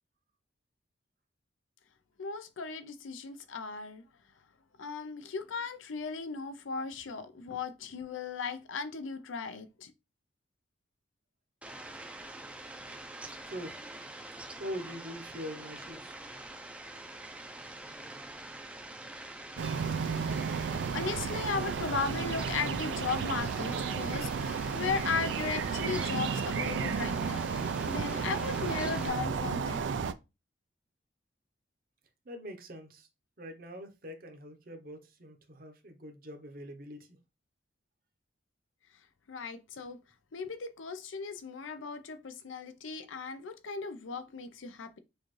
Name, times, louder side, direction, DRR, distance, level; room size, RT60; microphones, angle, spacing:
voice 1, 2.2-4.0 4.8-9.9 20.7-29.9 39.3-40.0 40.3-45.0, left 5 dB, 80° left, 0.6 m, -37 dB
Fowl, 11.6-29.1, right 2 dB, 5° right, 0.5 m, -45 dB
voice 2, 13.4-13.8 14.6-16.1 32.2-33.1 33.4-37.2, equal, 45° right, 0.9 m, -43 dB
sound 1, 19.6-30.1, right 6 dB, 70° right, 0.4 m, -33 dB
6.2 x 2.5 x 3.1 m
head